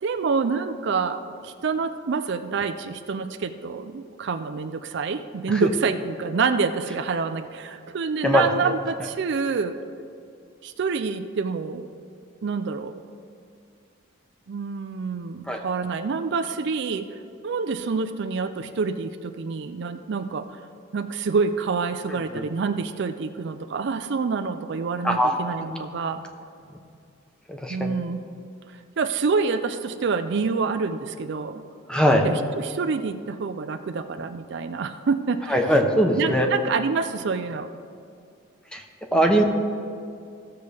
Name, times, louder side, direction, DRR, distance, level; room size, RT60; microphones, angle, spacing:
voice 1, 0.0-9.8 10.6-11.8 12.4-12.9 14.5-17.2 17.4-20.6 20.9-26.2 27.7-28.2 28.7-31.6 32.2-35.6 36.2-37.8 39.1-39.3, right 5 dB, 60° right, 9 dB, 0.4 m, -27 dB
voice 2, 25.0-25.4 25.7-25.8 27.5-27.9 31.9-32.2 35.5-36.5 38.7-38.8 39.1-39.4, equal, 5° left, 2 dB, 0.8 m, -20 dB
16.0 x 6.8 x 3.4 m, 2.4 s
head